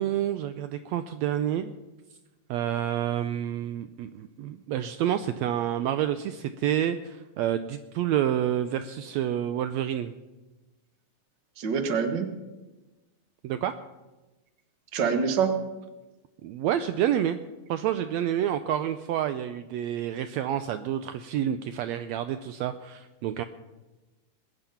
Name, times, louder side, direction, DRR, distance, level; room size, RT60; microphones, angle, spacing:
voice 1, 0.0-1.7 2.5-10.1 13.4-13.7 16.4-17.4 17.7-23.4, right 11 dB, 80° right, 10 dB, 1.7 m, -28 dB
voice 2, 11.6-12.3 14.9-15.6, right 6 dB, 45° right, 6 dB, 1.6 m, -25 dB
21.0 x 9.0 x 5.8 m, 1.1 s
omnidirectional pair, 3.3 m